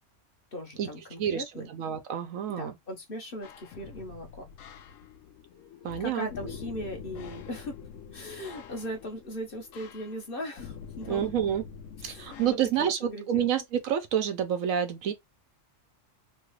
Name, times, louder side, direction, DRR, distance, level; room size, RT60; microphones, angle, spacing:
voice 1, 0.5-1.7 2.5-4.5 6.0-7.8 8.1-11.2 12.0-13.5, equal, 45° left, 1.0 m, -39 dB
voice 2, 1.2-2.7 5.8-6.3 11.1-11.6 12.0-15.1, right 9 dB, 85° right, 1.1 m, -28 dB
sound 1, 3.4-12.5, left 7 dB, 80° left, 1.0 m, -45 dB
3.1 x 2.3 x 3.1 m
omnidirectional pair, 1.4 m